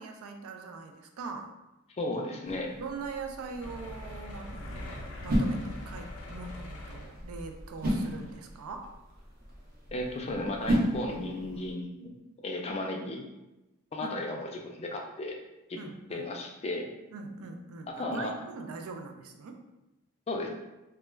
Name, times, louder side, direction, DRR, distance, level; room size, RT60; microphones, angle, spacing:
voice 1, 0.0-1.5 2.8-4.9 5.2-8.9 14.0-14.4 15.8-16.3 17.1-19.6, right 4 dB, 85° right, 5 dB, 0.3 m, -42 dB
voice 2, 2.0-2.7 9.9-12.1 12.4-13.2 13.9-15.4 15.7-15.8 16.1-16.9 17.9-18.3 20.3-20.5, left 2 dB, 30° left, 2 dB, 0.3 m, -34 dB
sound 1, 2.4-11.7, equal, 45° right, 0.6 m, -34 dB
sound 2, 3.6-7.5 8.3-8.4 8.8-8.9, left 1 dB, 85° left, 0.5 m, -43 dB
2.2 x 2.2 x 3.1 m, 0.99 s
head